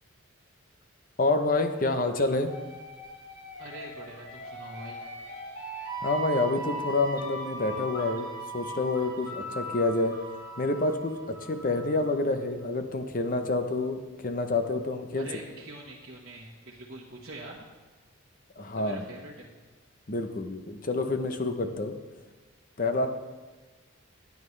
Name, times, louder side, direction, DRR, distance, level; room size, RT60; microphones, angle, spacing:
voice 1, 1.2-2.5 6.0-8.3 8.5-10.2 10.6-15.3 18.6-19.0 20.1-21.9 22.8-23.1, left 2 dB, 40° left, 7 dB, 0.7 m, -28 dB
sound 1, 2.4-12.1, right 1 dB, 90° left, 3.8 m, -39 dB
voice 2, 3.6-5.0 15.2-17.6 18.7-19.5 22.9-23.1, right 1 dB, 55° right, -5 dB, 1.3 m, -44 dB
16.0 x 9.6 x 3.3 m, 1.3 s
head